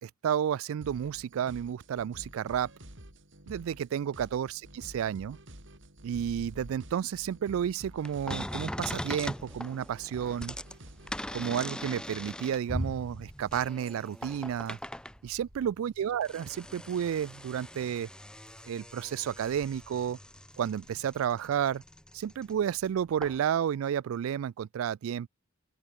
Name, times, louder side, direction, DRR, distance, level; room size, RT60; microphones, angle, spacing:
voice 1, 0.0-2.7 3.5-5.4 6.0-10.6 11.3-14.8 15.2-18.1 18.7-20.2 20.6-21.8 22.1-25.3, right 9 dB, 85° right, 0.3 m, -31 dB
sound 1, 0.8-11.5, right 1 dB, 65° right, 7.7 m, -51 dB
sound 2, 6.1-21.9, right 1 dB, 50° right, 4.7 m, -57 dB
sound 3, 8.0-15.3 15.9-22.9 23.2-23.4, left 1 dB, 5° left, 1.1 m, -40 dB
open air
head